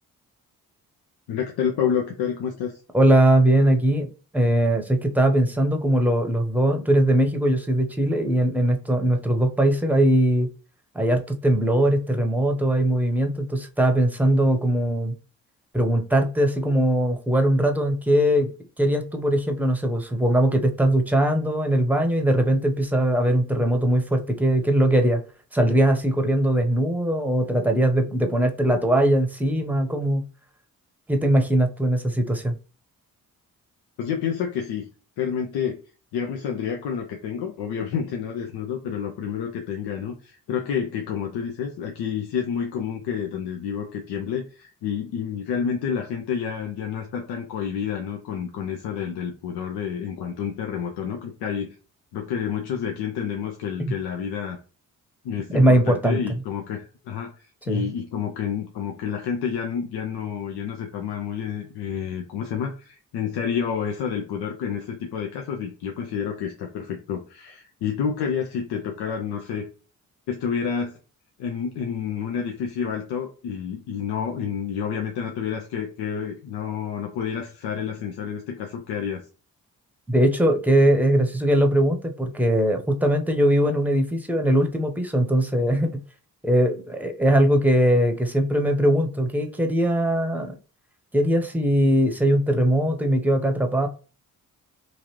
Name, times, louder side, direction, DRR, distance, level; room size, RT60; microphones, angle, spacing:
voice 1, 1.3-2.8 34.0-34.9 35.2-35.8 36.1-51.7 52.1-54.6 55.2-69.7 70.3-71.0 71.4-79.2, left 7 dB, 80° left, 0.6 m, -29 dB
voice 2, 2.9-4.1 4.3-10.5 10.9-15.1 15.7-18.5 18.8-25.2 25.5-30.2 31.1-32.6 53.8-53.9 55.5-56.4 57.7-57.9 80.1-85.9 86.4-90.5 91.1-93.9, right 1 dB, 5° right, 0.8 m, -20 dB
3.1 x 2.5 x 3.0 m
supercardioid pair, 50°, 39 cm